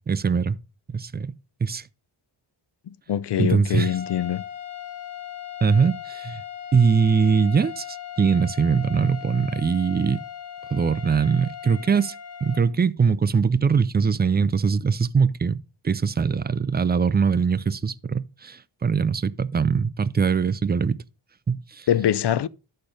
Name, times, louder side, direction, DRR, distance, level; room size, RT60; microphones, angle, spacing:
voice 1, 0.1-0.6 0.9-1.3 1.6-1.8 3.4-4.0 5.6-6.4 6.7-10.2 10.7-12.1 12.4-15.6 15.8-21.0 21.5-21.9, right 5 dB, 25° right, 0.3 m, -22 dB
voice 2, 2.9-4.4 21.9-22.5, left 10 dB, 55° left, 0.5 m, -23 dB
sound 1, 3.7-12.7, left 10 dB, 30° left, 1.6 m, -38 dB
11.5 x 4.4 x 4.9 m
wide cardioid pair, 105°, 49 cm